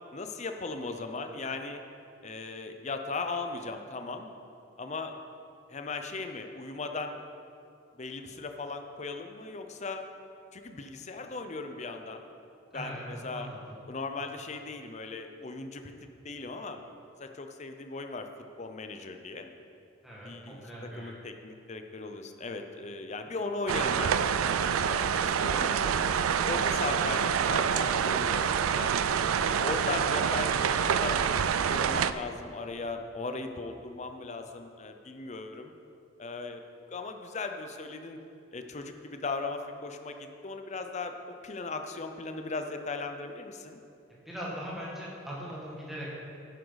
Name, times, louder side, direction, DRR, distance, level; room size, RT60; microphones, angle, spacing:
voice 1, 0.1-1.8 2.2-4.3 4.8-5.1 5.7-7.2 8.0-10.0 10.5-12.2 12.7-13.5 13.9-16.8 17.2-18.3 18.6-19.5 20.2-26.0 26.4-28.9 29.6-35.7 36.2-36.6 36.9-38.2 38.5-43.8, left 3 dB, 35° left, 6 dB, 0.6 m, -38 dB
voice 2, 20.0-21.1 44.3-46.1, equal, ahead, -7 dB, 1.9 m, -40 dB
sound 1, 23.7-32.1, right 7 dB, 90° right, 0.4 m, -27 dB
11.0 x 9.6 x 4.0 m, 2.7 s
head